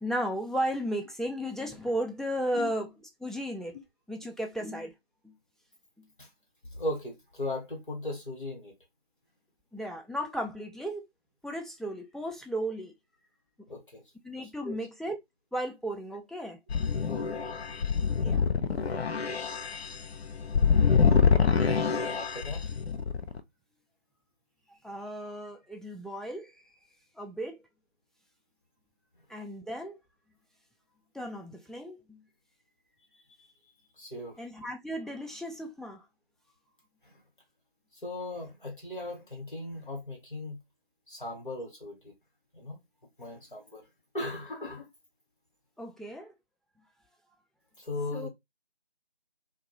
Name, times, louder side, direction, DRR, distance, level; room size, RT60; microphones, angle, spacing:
voice 1, 0.0-2.9 3.2-3.8 4.1-4.9 5.2-5.3 9.7-11.0 11.4-12.9 14.2-15.2 15.5-16.6 18.2-18.5 24.8-26.5 27.2-27.6 29.3-30.0 31.1-32.2 34.4-36.0 45.8-46.3 48.1-48.3, equal, ahead, 0.3 m, -35 dB
voice 2, 6.6-8.7 13.7-14.0 14.6-14.8 17.1-17.2 21.8-22.6 34.0-34.4 37.0-37.2 38.0-40.6 41.1-42.1 42.5-42.8 43.2-43.8 44.1-44.9 47.8-48.3, left 2 dB, 55° left, 1.1 m, -37 dB
sound 1, 16.7-23.4, left 6 dB, 85° left, 0.5 m, -26 dB
2.2 x 2.1 x 2.8 m
figure-of-eight pair, 180°, 31 cm